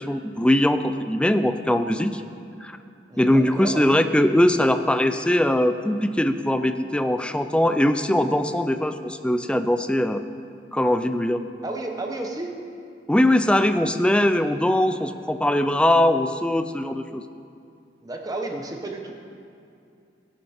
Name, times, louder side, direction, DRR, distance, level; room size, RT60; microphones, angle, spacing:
voice 1, 0.0-2.2 2.6-2.8 3.2-10.2 10.7-11.4 13.1-17.2, left 1 dB, 5° left, 9 dB, 0.4 m, -21 dB
voice 2, 3.1-3.8 11.6-12.5 18.0-19.1, right 2 dB, 20° right, 2 dB, 0.9 m, -32 dB
16.0 x 11.5 x 4.4 m, 2.5 s
head